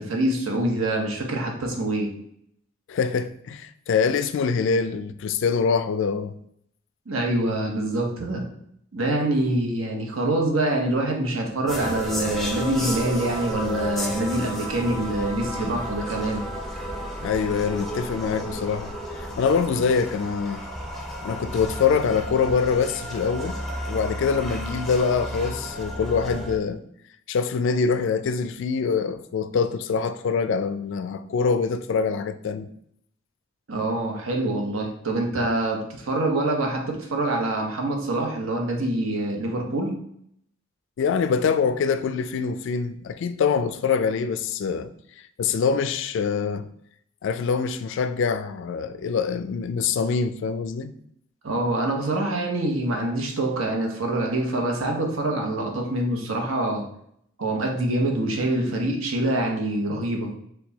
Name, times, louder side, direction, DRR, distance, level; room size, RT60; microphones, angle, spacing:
voice 1, 0.0-2.1 7.1-8.5 8.9-16.4 33.7-39.9 51.4-56.8 57.4-60.4, right 1 dB, 85° right, 0.9 m, -25 dB
voice 2, 2.9-6.3 17.2-18.9 19.3-20.7 21.2-23.6 23.9-26.8 27.3-32.7 41.0-44.9 45.4-46.7 47.2-50.9, left 5 dB, 65° left, 0.3 m, -24 dB
sound 1, 11.7-26.6, equal, ahead, 0.5 m, -32 dB
4.4 x 2.3 x 3.9 m
head